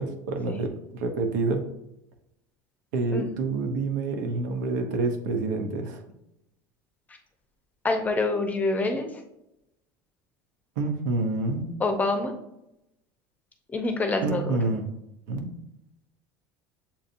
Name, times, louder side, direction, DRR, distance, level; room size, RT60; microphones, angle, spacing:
voice 1, 0.0-1.6 2.9-6.0 10.8-11.7 14.2-14.8 15.3-15.5, right 3 dB, 90° right, 5 dB, 0.8 m, -28 dB
voice 2, 7.8-9.1 11.8-12.3 13.7-14.4, left 3 dB, 15° left, 5 dB, 0.7 m, -26 dB
7.0 x 2.6 x 2.6 m, 0.85 s
supercardioid pair, 120°, 9 cm